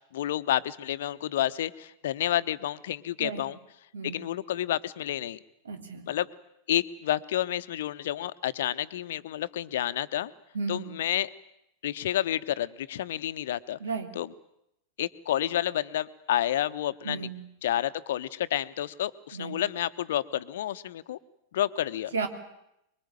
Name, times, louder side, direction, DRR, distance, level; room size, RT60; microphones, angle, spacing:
voice 1, 0.1-3.6 4.0-5.4 6.1-6.3 6.7-10.3 10.7-11.3 11.8-13.8 14.1-14.3 15.0-17.3 17.6-21.2 21.5-22.1, left 12 dB, 55° left, 13 dB, 1.0 m, -30 dB
voice 2, 3.9-4.3 5.6-6.1 10.5-11.0 13.8-14.2 17.0-17.4 19.3-19.6 22.1-22.3, right 4 dB, 70° right, 6 dB, 3.1 m, -34 dB
25.0 x 23.0 x 9.1 m, 0.81 s
figure-of-eight pair, 90°, 0 cm